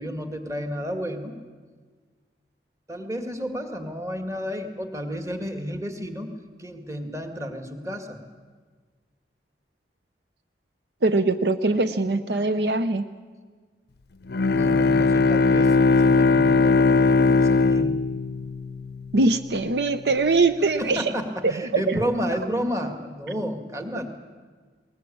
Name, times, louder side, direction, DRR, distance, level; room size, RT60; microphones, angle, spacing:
voice 1, 0.0-1.3 2.9-6.3 6.6-8.2 14.5-15.8 16.0-18.0 20.8-24.1, equal, 20° right, 6 dB, 2.0 m, -31 dB
voice 2, 11.0-13.1 19.1-21.1 21.4-22.0, right 3 dB, 65° right, 11 dB, 0.7 m, -22 dB
Bowed string instrument, 14.3-19.4, left 4 dB, 60° left, 0.6 m, -19 dB
20.5 x 19.5 x 8.6 m, 1.5 s
head